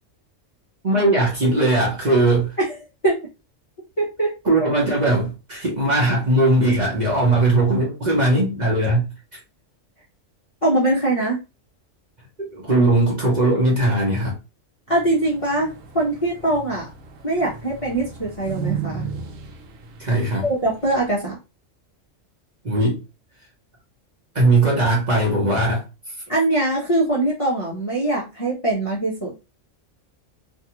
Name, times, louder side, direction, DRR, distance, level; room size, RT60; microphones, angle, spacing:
voice 1, 0.8-2.6 4.4-9.4 12.5-14.4 20.0-20.5 22.6-23.0 24.3-25.9, right 2 dB, 40° right, -3 dB, 0.8 m, -19 dB
voice 2, 4.0-4.3 10.6-11.4 14.9-16.9 17.2-19.1 20.4-21.4 26.3-29.3, right 2 dB, 35° left, -6 dB, 0.6 m, -22 dB
sound 1, 14.9-21.1, right 6 dB, 75° right, 0.9 m, -35 dB
2.6 x 2.3 x 2.8 m, 0.28 s
omnidirectional pair, 1.3 m